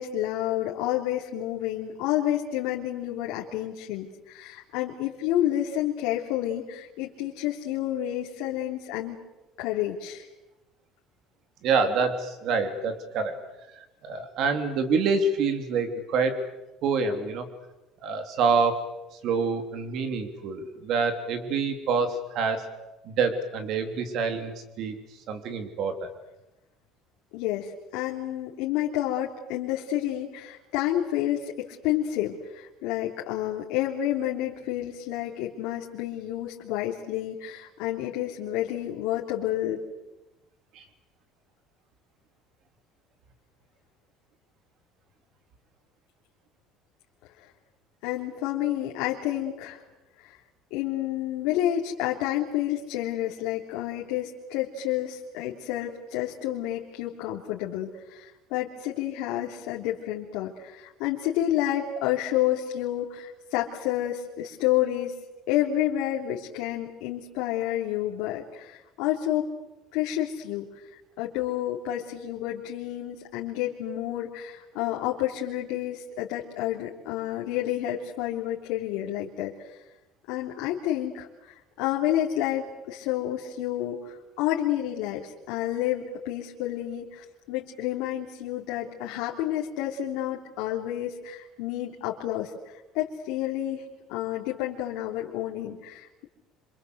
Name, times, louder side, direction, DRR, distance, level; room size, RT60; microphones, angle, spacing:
voice 1, 0.0-9.2 9.6-10.2 27.3-39.8 48.0-49.8 50.2-50.3 50.7-65.1 65.5-69.5 69.9-70.6 71.2-79.8 80.3-96.3, left 12 dB, 80° left, -3 dB, 3.2 m, -30 dB
voice 2, 11.6-13.4 14.0-16.4 16.8-17.5 18.0-18.7 19.2-22.6 23.0-25.0 25.3-26.1 40.7-40.8, right 4 dB, 45° right, 7 dB, 3.2 m, -26 dB
27.0 x 26.0 x 8.1 m, 1.0 s
cardioid pair, 180°, 0 cm